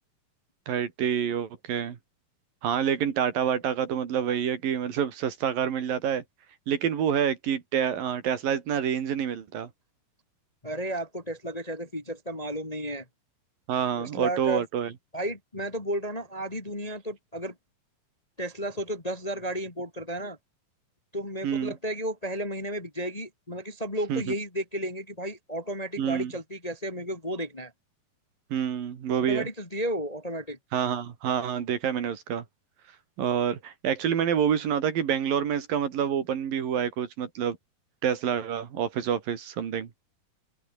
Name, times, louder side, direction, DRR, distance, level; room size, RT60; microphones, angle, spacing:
voice 1, 0.7-2.0 2.6-6.2 6.7-9.7 13.7-14.9 21.4-21.8 24.1-24.2 26.0-26.3 28.5-29.5 30.7-32.4 33.2-37.6 38.0-39.9, right 8 dB, 70° right, 4.1 m, -27 dB
voice 2, 10.6-13.0 14.0-14.6 15.1-17.5 18.4-20.4 21.1-27.7 29.2-30.6, right 1 dB, 15° left, 1.4 m, -33 dB
open air
omnidirectional pair, 4.2 m